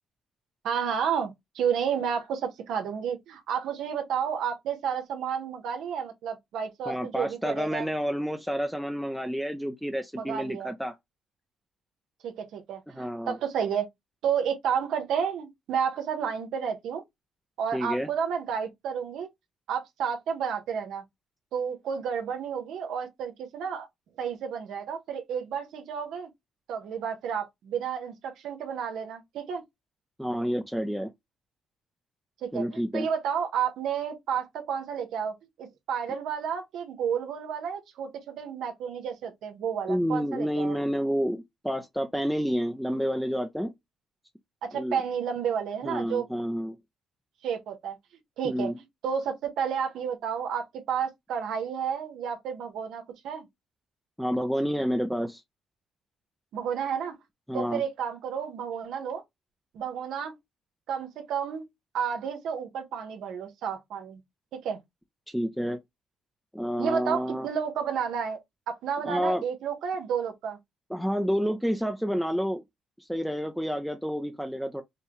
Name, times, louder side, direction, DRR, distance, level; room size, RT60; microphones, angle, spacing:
voice 1, 0.6-7.9 10.1-10.7 12.2-13.8 14.2-17.0 17.6-19.3 19.7-21.0 21.5-23.9 24.2-26.3 26.7-29.6 32.4-40.7 44.6-46.3 47.4-48.0 48.4-48.7 49.0-53.4 56.5-57.2 57.5-59.2 59.7-60.3 60.9-61.7 61.9-64.2 64.6-64.8 66.8-68.4 68.7-70.6, right 7 dB, 80° right, 1.1 m, -31 dB
voice 2, 6.9-10.9 13.0-13.4 17.7-18.1 30.2-31.1 32.5-33.1 39.9-43.7 44.7-45.0 45.8-46.8 48.4-48.7 54.2-55.4 57.5-57.8 65.3-65.8 66.5-67.5 69.1-69.4 70.9-72.6 73.0-74.8, equal, ahead, 0.6 m, -29 dB
5.7 x 2.3 x 3.1 m
cardioid pair, 90°, 0 cm